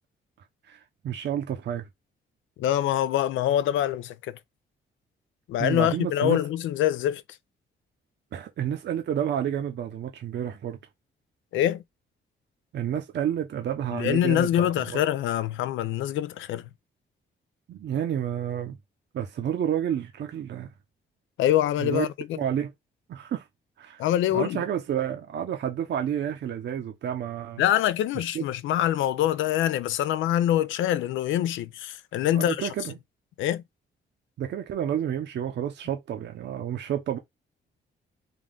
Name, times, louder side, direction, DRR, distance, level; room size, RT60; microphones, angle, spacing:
voice 1, 0.7-1.9 5.6-6.4 8.3-10.8 12.7-15.0 17.7-18.8 19.1-20.7 21.8-22.1 22.4-22.7 23.1-23.4 23.8-24.0 24.3-27.6 28.3-28.4 32.3-33.0 34.4-37.2, right 9 dB, 65° right, 0.7 m, -30 dB
voice 2, 2.6-4.4 5.5-7.2 11.5-11.8 13.9-16.6 21.4-22.4 24.0-24.6 27.6-32.7 33.4-33.6, left 12 dB, 85° left, 0.4 m, -25 dB
3.7 x 2.4 x 3.6 m
cardioid pair, 90°, 19 cm